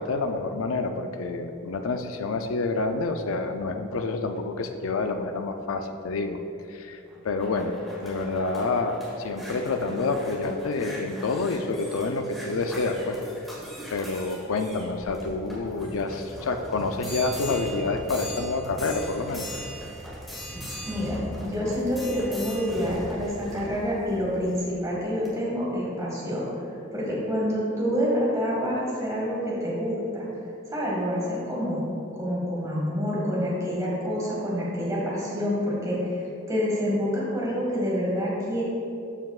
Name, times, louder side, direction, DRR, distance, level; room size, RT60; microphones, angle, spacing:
voice 1, 0.0-6.4 6.7-7.0 7.2-7.7 8.0-13.2 13.9-19.5, left 3 dB, 85° left, 6 dB, 0.5 m, -28 dB
sound 1, 7.0-24.7 25.3-25.4, equal, ahead, 1.7 m, -39 dB
voice 2, 20.9-21.2 21.4-26.4 26.9-30.3 30.7-31.8 32.1-38.6, equal, 15° right, -6 dB, 1.8 m, -27 dB
12.5 x 5.8 x 2.4 m, 2.6 s
head